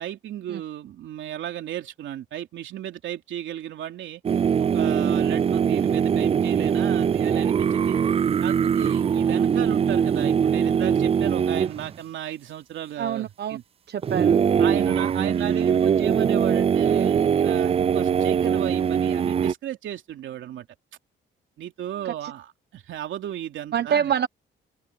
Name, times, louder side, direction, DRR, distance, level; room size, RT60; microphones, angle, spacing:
voice 1, 0.0-4.2 4.7-8.0 8.4-13.6 14.6-20.7 21.6-24.1, right 11 dB, 75° right, 3.1 m, -34 dB
sound 1, 4.2-11.9 14.0-19.5, right 7 dB, 30° right, 0.3 m, -22 dB
voice 2, 13.0-13.6 13.9-14.4 14.8-15.0 22.0-22.3 23.7-24.3, right 8 dB, 55° right, 1.2 m, -26 dB
open air
cardioid pair, 90°, 20 cm